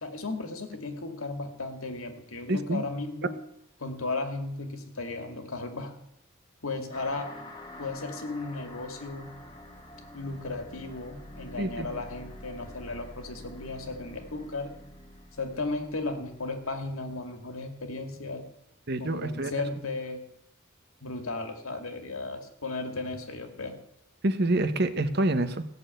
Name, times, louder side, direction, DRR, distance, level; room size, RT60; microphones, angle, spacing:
voice 1, 0.0-3.4 3.8-5.9 6.6-7.3 7.8-9.4 10.1-14.7 15.4-18.4 19.0-20.2 21.0-23.8, left 3 dB, 90° left, 6 dB, 2.2 m, -35 dB
voice 2, 2.5-2.8 11.6-11.9 18.9-19.5 24.2-25.6, right 2 dB, 50° right, 11 dB, 1.0 m, -27 dB
sound 1, 6.9-17.9, left 1 dB, 20° left, 1.8 m, -47 dB
16.0 x 6.8 x 9.2 m, 0.76 s
head